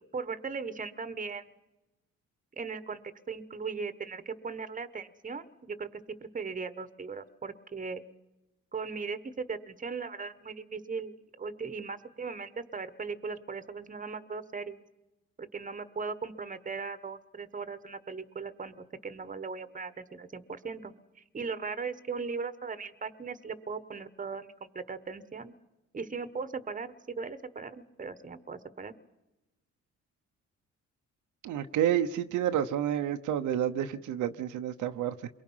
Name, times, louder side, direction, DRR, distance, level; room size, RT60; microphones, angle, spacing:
voice 1, 0.1-1.5 2.6-3.0 3.3-6.0 6.3-8.0 8.7-14.8 15.4-18.8 19.0-25.5 25.9-28.9, right 5 dB, 25° right, 1.3 m, -38 dB
voice 2, 31.4-35.1, right 10 dB, 80° right, 1.0 m, -29 dB
28.5 x 22.5 x 5.6 m
cardioid pair, 90°, 30 cm